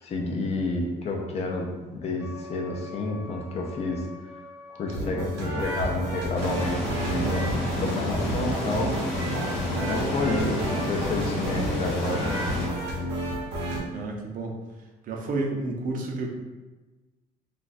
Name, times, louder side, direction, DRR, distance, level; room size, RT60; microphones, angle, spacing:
voice 1, 0.0-4.4 4.7-8.9 9.2-9.3 9.8-12.3, left 2 dB, 40° left, 0 dB, 0.6 m, -30 dB
Wind instrument woodwind instrument, 2.2-8.7, left 1 dB, 10° right, 0.4 m, -47 dB
sound 1, 4.9-13.8, equal, 85° right, 0.8 m, -31 dB
sound 2, 6.3-12.7, left 1 dB, 80° left, 1.0 m, -31 dB
voice 2, 13.9-14.6 15.0-16.3, right 2 dB, 55° right, 1 dB, 0.6 m, -30 dB
2.5 x 2.3 x 4.0 m, 1.2 s
cardioid pair, 110°, 17 cm